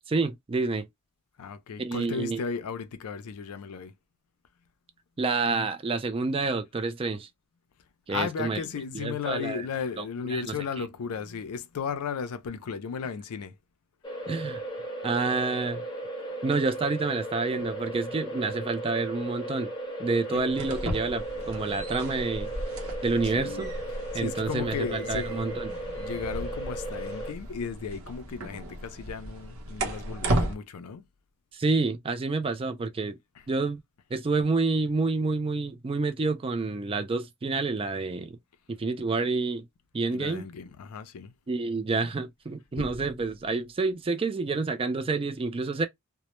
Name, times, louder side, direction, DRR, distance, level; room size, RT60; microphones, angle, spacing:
voice 1, 0.1-0.9 1.8-2.4 5.2-7.3 8.1-8.6 8.9-9.6 10.0-10.9 14.3-14.6 15.0-15.8 16.4-19.7 20.0-22.5 23.0-23.7 24.1-25.7 31.5-33.2 33.5-33.8 34.1-38.4 38.8-39.7 39.9-40.5 41.5-45.9, right 3 dB, 25° right, 0.3 m, -28 dB
voice 2, 1.4-3.9 8.1-13.6 17.5-17.7 20.3-20.4 23.1-23.7 24.1-25.6 25.9-31.0 40.1-41.3 42.8-43.0, left 6 dB, 85° left, 0.4 m, -35 dB
sound 1, 14.0-27.3, right 1 dB, 20° left, 0.6 m, -36 dB
sound 2, 20.5-30.5, right 1 dB, 70° right, 0.7 m, -35 dB
2.1 x 2.0 x 2.9 m
head